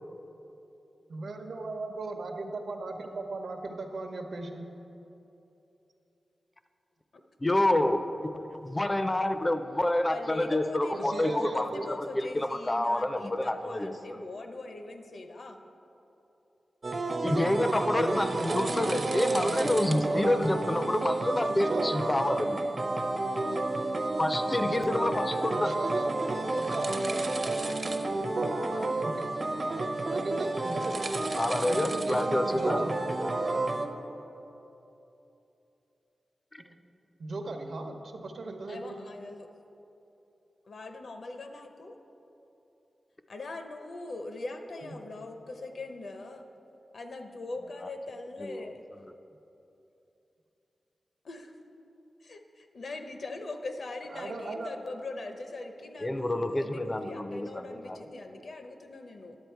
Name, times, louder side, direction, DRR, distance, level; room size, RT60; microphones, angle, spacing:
voice 1, 1.1-4.7 10.9-11.9 18.4-20.3 21.5-21.8 25.6-26.2 26.6-26.9 29.0-29.3 30.1-30.9 31.7-33.0 36.6-36.8 37.2-39.0 44.8-45.0 54.1-54.7, right 2 dB, 70° right, 5 dB, 0.8 m, -37 dB
voice 2, 7.4-8.1 8.3-13.9 17.2-22.6 24.2-25.8 31.4-32.8 36.5-36.6 48.4-48.7 56.0-58.0, left 1 dB, 20° left, 9 dB, 0.4 m, -28 dB
voice 3, 10.1-15.6 24.4-24.8 38.7-39.5 40.7-42.0 43.3-46.4 46.9-48.8 51.2-51.5 52.2-59.4, left 2 dB, 65° left, 5 dB, 0.7 m, -41 dB
sound 1, 16.8-33.9, right 2 dB, 40° right, 0.6 m, -30 dB
10.5 x 7.7 x 4.5 m, 2.9 s
wide cardioid pair, 130°, 0 cm